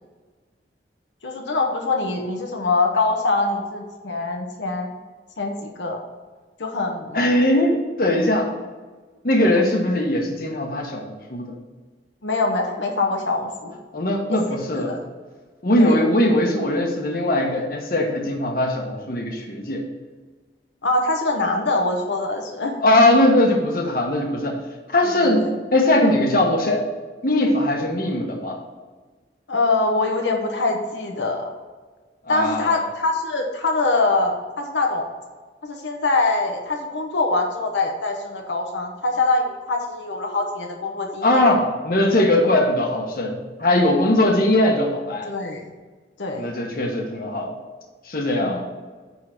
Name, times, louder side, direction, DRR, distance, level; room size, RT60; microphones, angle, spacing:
voice 1, 1.2-4.9 5.4-6.0 6.6-7.4 12.2-13.7 14.7-15.0 15.8-16.0 20.8-23.0 25.0-25.5 29.5-31.5 32.3-35.0 35.6-41.5 45.2-45.6 46.2-46.5 48.4-48.6, left 3 dB, 85° left, 1 dB, 1.0 m, -24 dB
voice 2, 7.1-8.5 9.2-11.5 13.9-15.0 15.6-19.9 22.8-24.6 24.9-26.8 27.2-28.6 32.3-32.7 41.2-45.3 46.4-47.5 48.1-48.6, left 1 dB, 50° left, 1 dB, 1.2 m, -20 dB
9.4 x 3.8 x 5.9 m, 1.4 s
head